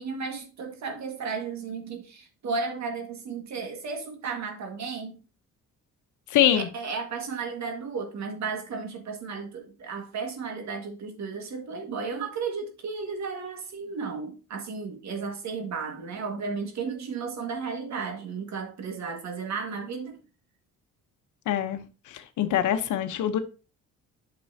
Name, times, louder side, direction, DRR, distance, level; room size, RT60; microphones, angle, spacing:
voice 1, 0.0-5.2 6.5-20.2, right 5 dB, 65° right, 1.9 m, -34 dB
voice 2, 6.3-6.7 21.5-21.8 22.1-23.4, left 11 dB, 80° left, 0.9 m, -24 dB
8.5 x 6.1 x 2.8 m
cardioid pair, 90°, 30 cm